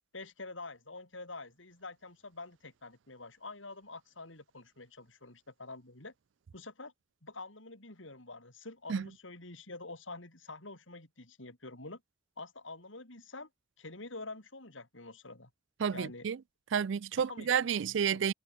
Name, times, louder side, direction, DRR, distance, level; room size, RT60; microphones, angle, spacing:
voice 1, 0.1-6.1 6.5-6.9 7.2-12.0 12.4-13.5 13.8-15.5 15.9-16.3 17.2-17.8, left 3 dB, 75° left, 4.5 m, -47 dB
voice 2, 15.8-16.4 16.7-18.3, right 7 dB, 70° right, 0.4 m, -30 dB
head